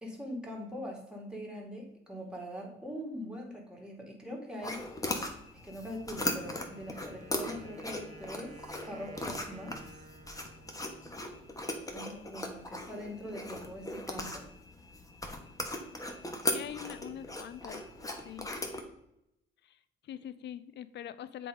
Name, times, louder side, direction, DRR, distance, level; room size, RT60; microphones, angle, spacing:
voice 1, 0.0-4.9 5.5-10.1 11.9-14.5, equal, 5° right, 0 dB, 2.4 m, -42 dB
sound 1, 4.6-18.8, left 1 dB, 15° left, 1.4 m, -39 dB
Wind instrument woodwind instrument, 6.0-11.8, right 2 dB, 35° right, 1.0 m, -53 dB
voice 2, 16.5-17.8 18.2-18.5 19.6-21.5, left 10 dB, 60° left, 14 dB, 0.5 m, -43 dB
7.5 x 4.1 x 5.0 m, 0.81 s
cardioid pair, 90°, 20 cm